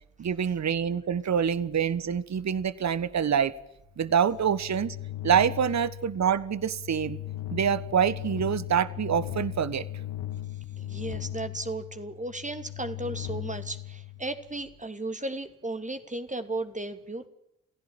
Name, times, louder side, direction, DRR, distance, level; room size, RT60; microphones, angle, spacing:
voice 1, 0.2-3.5 4.0-5.0 5.2-7.2 7.5-9.8, right 8 dB, 40° right, 18 dB, 1.4 m, -26 dB
sound 1, 4.0-14.6, left 13 dB, 60° left, 1.4 m, -38 dB
voice 2, 10.8-17.3, right 2 dB, 15° right, 9 dB, 2.9 m, -35 dB
29.5 x 16.0 x 9.0 m, 0.82 s
figure-of-eight pair, 40°, 42 cm